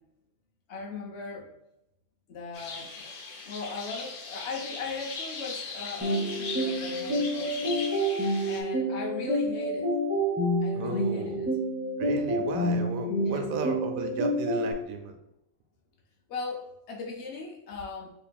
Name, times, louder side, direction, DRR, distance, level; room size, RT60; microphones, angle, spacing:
voice 1, 0.7-1.5 2.3-3.0 3.5-7.8 8.5-9.9 10.6-11.5 13.2-13.4 16.3-18.1, left 4 dB, 60° left, -1 dB, 0.8 m, -38 dB
sound 1, 2.5-8.6, left 4 dB, 80° left, 1.2 m, -39 dB
sound 2, 6.0-14.7, equal, 10° right, 0.4 m, -28 dB
voice 2, 10.7-11.5 12.0-15.2, right 5 dB, 75° right, 5 dB, 1.0 m, -34 dB
3.0 x 2.5 x 4.1 m, 0.82 s
omnidirectional pair, 1.5 m